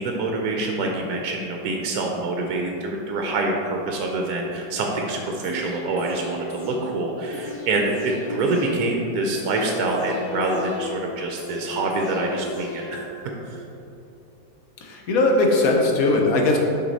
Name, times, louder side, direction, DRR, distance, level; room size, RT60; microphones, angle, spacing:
voice 1, 0.0-13.1 13.5-13.6, right 2 dB, 70° right, 1 dB, 1.0 m, -26 dB
sound 1, 5.4-13.4 13.7-13.8, left 2 dB, 40° left, 1.0 m, -36 dB
voice 2, 14.8-16.6, left 2 dB, 60° left, 1 dB, 1.1 m, -19 dB
6.1 x 4.9 x 4.0 m, 2.9 s
omnidirectional pair, 1.9 m